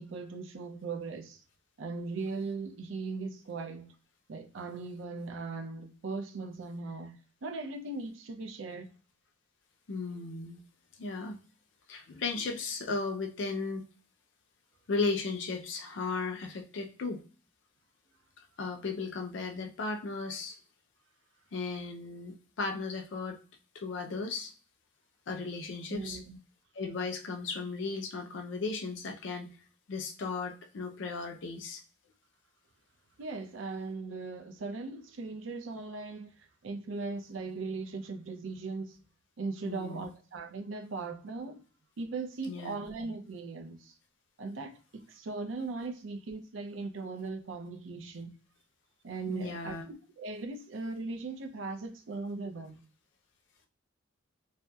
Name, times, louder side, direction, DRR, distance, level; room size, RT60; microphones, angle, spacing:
voice 1, 0.0-1.4 1.8-3.9 4.3-7.2 7.4-8.9 25.9-26.4 33.2-39.0 39.4-41.6 42.0-43.9 44.4-48.3 49.0-52.8, right 3 dB, 90° right, 0.5 m, -39 dB
voice 2, 9.9-10.6 11.0-11.4 11.9-13.8 14.9-17.2 18.6-20.6 21.5-23.4 23.7-24.5 25.3-26.2 26.7-29.5 29.9-31.8 39.6-40.1 42.5-42.8 49.3-49.9, left 4 dB, 75° left, 0.5 m, -35 dB
2.7 x 2.0 x 2.2 m
head